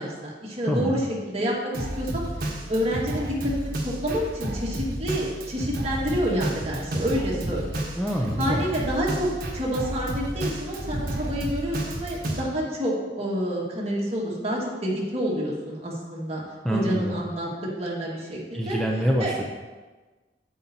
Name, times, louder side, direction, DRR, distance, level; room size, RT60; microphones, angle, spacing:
voice 1, 0.0-2.2 2.7-7.9 8.4-16.4 16.7-17.5 17.8-18.8 19.2-19.3, equal, 35° right, -4 dB, 1.9 m, -28 dB
voice 2, 0.7-1.0 8.0-8.6 16.6-17.1 18.5-19.4, equal, 5° left, -2 dB, 0.6 m, -25 dB
Drum kit, 1.7-12.4, right 1 dB, 55° right, 1.4 m, -31 dB
9.0 x 8.5 x 2.8 m, 1.3 s
head